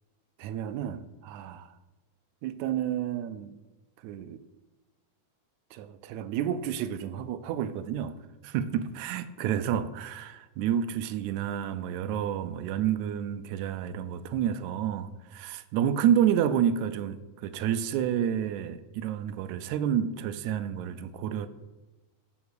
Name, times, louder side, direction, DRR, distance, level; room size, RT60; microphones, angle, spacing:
voice 1, 0.4-1.7 2.4-3.6 4.0-4.4 5.7-8.2 8.4-21.5, right 9 dB, 80° right, 13 dB, 1.8 m, -30 dB
10.0 x 4.5 x 6.7 m, 1.2 s
omnidirectional pair, 3.5 m